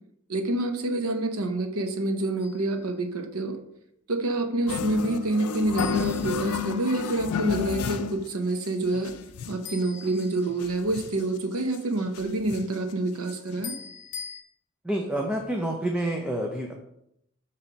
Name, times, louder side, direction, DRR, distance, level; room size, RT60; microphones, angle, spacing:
voice 1, 0.3-3.6 4.1-9.1 9.5-13.8, right 2 dB, 70° right, 6 dB, 0.9 m, -27 dB
sound 1, 2.4-2.8 5.8-7.1 9.6-10.9 13.6-14.4, left 6 dB, 55° left, 1.3 m, -42 dB
sound 2, 4.7-8.3 8.6-8.7 8.9-9.7 10.2-10.3 10.5-11.3 11.7-11.8 12.1-12.8 13.3-13.4 13.6-13.7, left 6 dB, 75° left, 0.5 m, -31 dB
voice 2, 14.8-16.7, right 1 dB, 5° right, 0 dB, 0.6 m, -28 dB
6.8 x 3.3 x 5.9 m, 0.79 s
head